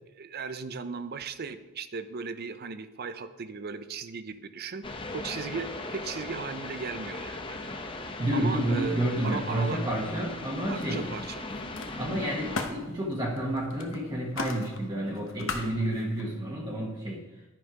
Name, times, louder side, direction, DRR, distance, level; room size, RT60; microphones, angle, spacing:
voice 1, 0.1-4.8 5.1-7.7 8.3-9.8 10.7-11.5, right 5 dB, 45° right, 12 dB, 0.5 m, -37 dB
sound 1, 4.8-12.7, left 2 dB, 25° left, 0.7 m, -38 dB
voice 2, 8.2-11.1 12.0-17.2, right 1 dB, 20° right, -3 dB, 1.1 m, -30 dB
Camera, 9.8-10.4 10.7-16.2, left 3 dB, 65° left, 0.9 m, -40 dB
11.0 x 5.4 x 4.9 m, 1.1 s
head